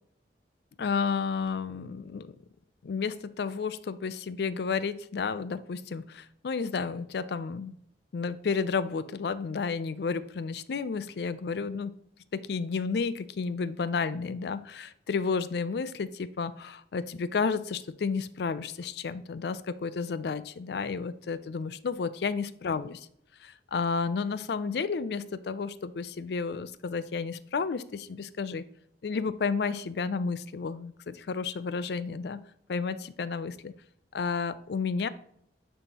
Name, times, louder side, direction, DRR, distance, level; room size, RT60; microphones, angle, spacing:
voice 1, 0.8-2.3 2.8-7.8 8.1-11.9 12.3-23.0 23.4-28.6 29.0-32.4 32.7-33.7 34.1-35.1, left 5 dB, 65° left, 15 dB, 0.4 m, -31 dB
6.8 x 5.6 x 2.9 m, 0.70 s
head